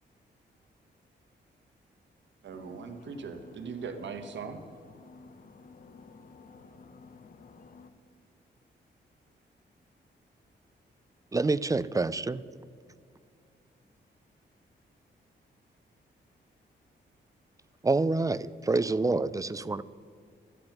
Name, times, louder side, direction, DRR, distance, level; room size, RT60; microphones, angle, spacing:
voice 1, 2.4-4.6, right 5 dB, 75° right, 6 dB, 1.4 m, -40 dB
sound 1, 2.5-7.9, left 4 dB, 50° left, 0.9 m, -53 dB
voice 2, 11.3-12.4 17.8-19.8, right 3 dB, 20° right, 17 dB, 0.4 m, -27 dB
voice 3, 12.8-13.4 13.9-14.0 14.4-15.2 16.2-16.6 17.1-17.2, left 1 dB, 15° left, -1 dB, 3.6 m, -82 dB
12.5 x 9.9 x 6.0 m, 2.1 s
cardioid pair, 100°, 19 cm